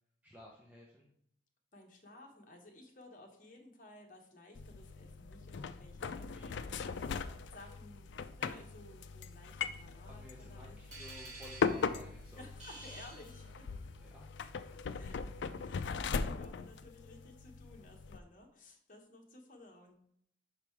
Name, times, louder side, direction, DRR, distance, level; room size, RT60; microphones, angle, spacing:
voice 1, 0.2-1.1 6.2-7.7 10.0-12.5 12.8-12.9 13.5-14.3, equal, 10° right, -3 dB, 0.8 m, -56 dB
voice 2, 1.7-7.0 7.3-10.8 12.3-13.7 14.7-19.9, left 1 dB, 45° left, 2 dB, 1.2 m, -56 dB
sound 1, 4.6-18.2, left 5 dB, 80° left, 0.4 m, -40 dB
sound 2, 10.9-14.0, right 2 dB, 40° right, 2.8 m, -51 dB
5.6 x 5.2 x 4.6 m, 0.71 s
head